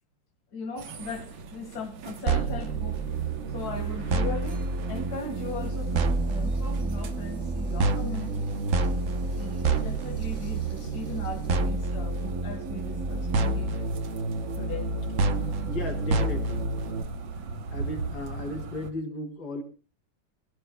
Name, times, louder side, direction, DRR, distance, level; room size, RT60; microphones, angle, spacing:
voice 1, 0.5-3.0 3.5-8.5 9.0-13.9 14.5-14.9 15.4-15.5, left 4 dB, 50° left, 2.2 m, -39 dB
sound 1, 0.8-18.9, right 4 dB, 70° right, 1.9 m, -42 dB
sound 2, 2.3-17.0, right 3 dB, 50° right, 1.0 m, -28 dB
sound 3, 5.5-11.5, left 1 dB, 25° right, 5.5 m, -53 dB
voice 2, 15.3-16.7 17.7-19.6, left 2 dB, 65° left, 3.8 m, -35 dB
27.5 x 17.0 x 2.2 m
omnidirectional pair, 2.3 m